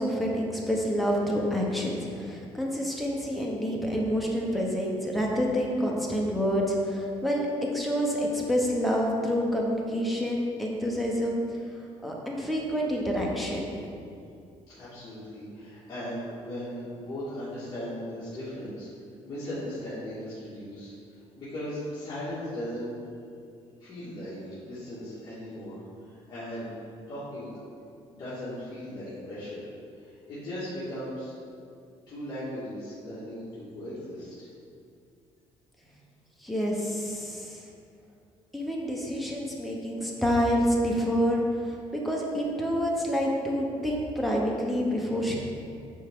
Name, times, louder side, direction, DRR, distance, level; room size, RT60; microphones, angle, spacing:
voice 1, 0.0-7.5 7.7-11.4 12.0-13.8 36.4-37.6 38.5-45.3, equal, ahead, -2 dB, 0.7 m, -28 dB
voice 2, 14.8-18.9 19.2-22.9 23.8-26.7 27.1-27.6 28.1-31.3 32.1-34.5, equal, 35° left, -12 dB, 1.5 m, -38 dB
9.2 x 3.5 x 3.5 m, 2.4 s
cardioid pair, 165°, 11 cm